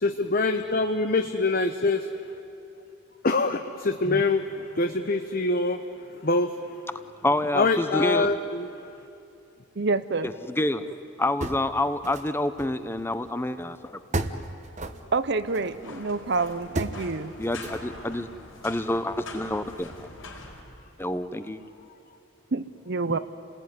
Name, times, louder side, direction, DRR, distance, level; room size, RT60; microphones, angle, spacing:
voice 1, 0.0-2.1 3.2-5.8 6.2-6.5 7.5-8.7, left 3 dB, 45° left, 6 dB, 0.9 m, -24 dB
voice 2, 7.2-8.3 10.2-10.8 11.2-14.3 17.4-18.3 18.6-20.1 21.0-21.6, left 1 dB, 10° left, 11 dB, 0.8 m, -28 dB
voice 3, 9.8-10.3 15.1-17.3 22.5-23.2, right 3 dB, 55° right, 12 dB, 0.8 m, -27 dB
sound 1, 11.4-12.3 12.6-13.6 14.1-15.8 16.8-17.0 17.6-18.1, right 2 dB, 35° right, 1.1 m, -33 dB
sound 2, 15.4-20.6, left 2 dB, 80° left, 4.5 m, -44 dB
29.5 x 19.5 x 9.6 m, 2.7 s
head